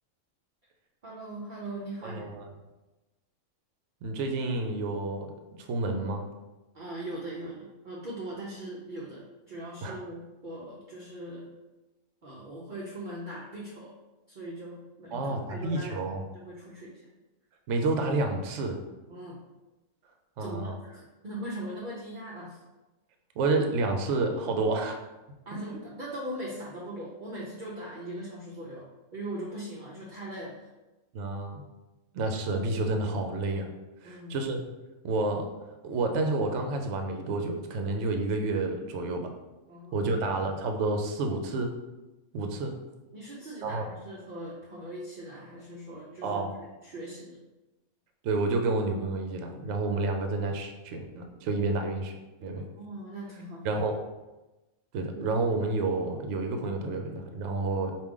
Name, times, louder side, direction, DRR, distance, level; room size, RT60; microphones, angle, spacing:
voice 1, 1.0-2.3 6.7-11.5 12.2-13.9 14.3-16.1 16.3-17.1 19.1-19.4 20.4-22.6 25.5-30.7 34.0-34.4 39.7-40.3 43.1-47.4 52.6-53.8, right 1 dB, 50° right, -4 dB, 0.6 m, -40 dB
voice 2, 2.0-2.5 4.0-5.3 5.6-6.2 9.8-10.0 15.1-16.2 17.7-18.8 20.4-20.8 23.4-25.0 25.7-25.8 31.1-31.6 32.1-33.7 34.0-34.6 35.0-35.5 35.8-39.3 39.9-41.7 42.3-42.7 43.6-43.9 46.2-46.5 48.2-52.1 52.4-52.6 53.6-54.0 54.9-57.9, right 3 dB, 70° right, 4 dB, 0.9 m, -29 dB
4.7 x 2.6 x 3.6 m, 1.1 s
omnidirectional pair, 1.4 m